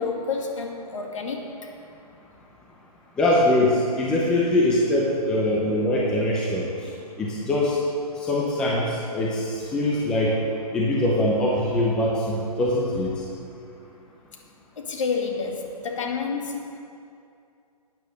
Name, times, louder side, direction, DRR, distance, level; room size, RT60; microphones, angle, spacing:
voice 1, 0.0-1.5 14.8-16.8, left 5 dB, 50° left, 2 dB, 2.1 m, -29 dB
voice 2, 3.2-6.9 7.2-7.8 8.2-10.3 10.7-13.1, left 1 dB, 5° left, -4 dB, 0.6 m, -23 dB
12.5 x 9.2 x 6.4 m, 2.5 s
hypercardioid pair, 165°, 20 cm